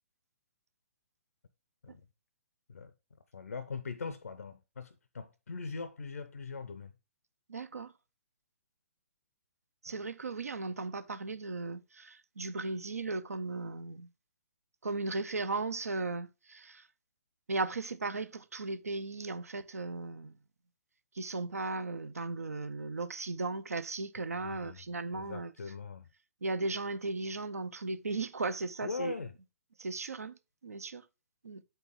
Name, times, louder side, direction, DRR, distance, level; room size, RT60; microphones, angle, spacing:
voice 1, 3.3-6.9 9.9-10.0 24.3-24.8 25.1-26.1 28.8-29.3, left 5 dB, 80° left, 0.5 m, -41 dB
voice 2, 7.5-7.9 9.8-14.1 14.8-16.9 17.5-20.3 21.1-25.5 26.4-29.1 29.8-31.0 31.4-31.6, right 3 dB, 80° right, 0.6 m, -36 dB
8.0 x 4.4 x 3.6 m
figure-of-eight pair, 130°, 8 cm